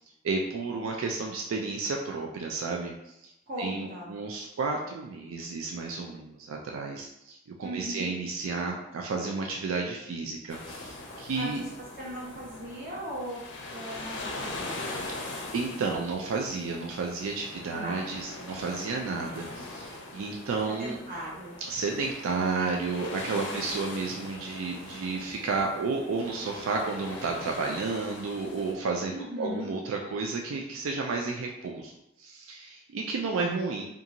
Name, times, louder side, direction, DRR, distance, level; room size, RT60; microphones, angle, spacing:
voice 1, 0.2-2.9 3.2-3.3 3.6-11.6 15.5-21.0 21.7-31.9 32.2-33.8, right 4 dB, 80° right, 1 dB, 0.3 m, -32 dB
voice 2, 3.5-4.1 7.6-8.1 11.3-15.0 17.7-18.1 19.2-19.4 20.7-21.6 23.5-23.7 29.1-29.8, equal, 40° right, -6 dB, 0.9 m, -39 dB
sound 1, 10.5-28.7, left 2 dB, 55° left, 0.5 m, -41 dB
2.5 x 2.4 x 2.8 m, 0.83 s
head